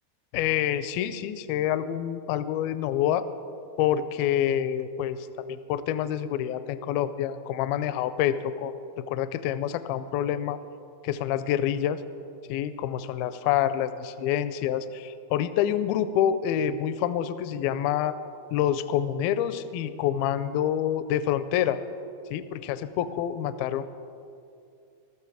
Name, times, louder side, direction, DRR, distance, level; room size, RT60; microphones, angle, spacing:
voice 1, 0.3-3.3 3.8-10.6 11.0-12.0 12.5-18.2 18.5-21.8 22.3-23.8, left 10 dB, 80° left, 12 dB, 2.3 m, -27 dB
15.0 x 14.0 x 4.8 m, 2.5 s
omnidirectional pair, 4.5 m